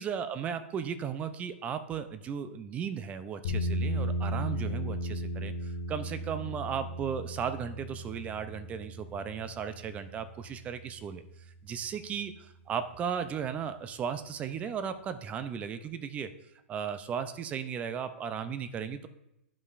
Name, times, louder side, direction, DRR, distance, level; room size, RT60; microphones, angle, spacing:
voice 1, 0.0-11.2 11.6-16.3 16.7-19.1, right 7 dB, 20° right, 10 dB, 0.5 m, -36 dB
sound 1, 3.4-11.5, equal, 65° left, 1.8 m, -36 dB
11.5 x 5.3 x 2.5 m, 0.87 s
hypercardioid pair, 140°, 7 cm